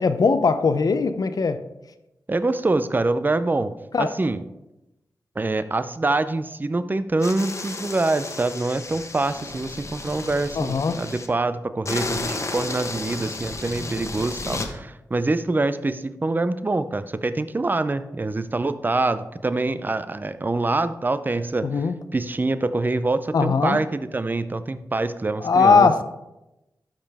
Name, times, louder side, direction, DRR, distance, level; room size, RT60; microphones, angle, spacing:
voice 1, 0.0-1.6 3.9-4.1 10.6-11.0 21.6-22.0 23.3-23.8 25.4-26.0, left 4 dB, 65° left, 10 dB, 0.7 m, -20 dB
voice 2, 2.3-4.4 5.4-21.7 22.1-26.0, right 2 dB, 30° right, 12 dB, 0.5 m, -25 dB
sound 1, 7.2-11.3 11.8-14.7, left 2 dB, 45° left, 1.1 m, -32 dB
12.0 x 5.2 x 3.5 m, 0.95 s
cardioid pair, 50°, 7 cm